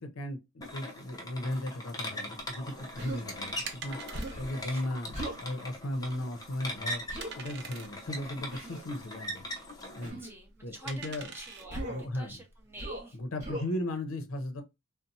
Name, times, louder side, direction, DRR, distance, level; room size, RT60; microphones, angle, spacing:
voice 1, 0.0-4.0 4.3-7.0 7.3-9.4 9.9-10.2 10.6-11.3 11.9-12.4 13.1-14.6, left 1 dB, 80° left, 0.6 m, -36 dB
sound 1, 0.6-10.1, left 1 dB, 20° left, 0.6 m, -41 dB
sound 2, 2.4-13.0, right 5 dB, 55° right, 0.6 m, -47 dB
Human voice, 3.0-3.2 4.1-4.5 5.1-5.4 7.1-7.3 8.5-8.8 10.0-10.3 11.7-12.1 12.8-13.1 13.4-13.7, right 1 dB, 35° right, 1.3 m, -38 dB
voice 2, 10.1-13.2, right 1 dB, 10° right, 0.8 m, -49 dB
4.0 x 2.0 x 2.6 m
head